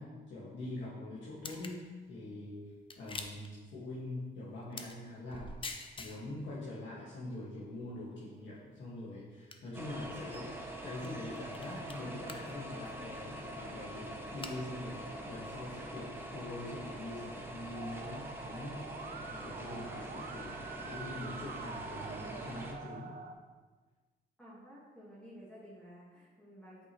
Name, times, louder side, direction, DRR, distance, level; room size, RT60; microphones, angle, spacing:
voice 1, 0.0-10.6 10.8-18.8 19.3-23.1, left 2 dB, 65° left, -8 dB, 1.8 m, -44 dB
sound 1, 1.4-1.8 2.9-3.5 4.7-5.0 5.3-10.4 11.0-11.1 11.4-12.0 12.3-12.5 12.9-13.0 13.6-13.8 14.2-14.6 15.4-15.5 16.2-16.3, left 3 dB, 25° left, 0.6 m, -47 dB
sound 2, 9.7-22.7, right 1 dB, 10° right, 1.0 m, -44 dB
Musical instrument, 17.8-23.3, right 6 dB, 50° right, 0.6 m, -47 dB
voice 2, 24.4-26.9, equal, 5° left, -7 dB, 1.6 m, -53 dB
8.3 x 5.3 x 3.1 m, 1.4 s
cardioid pair, 90°, 20 cm